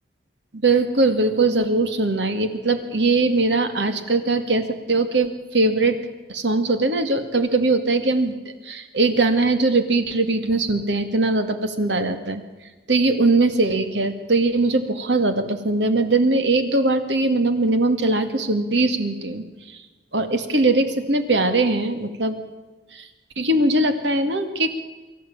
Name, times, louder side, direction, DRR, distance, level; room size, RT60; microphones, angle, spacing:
voice 1, 0.5-12.4 12.9-19.8 20.1-22.4 22.9-23.1 23.4-24.8, right 2 dB, 75° right, 8 dB, 2.2 m, -21 dB
24.5 x 14.0 x 8.8 m, 1.2 s
head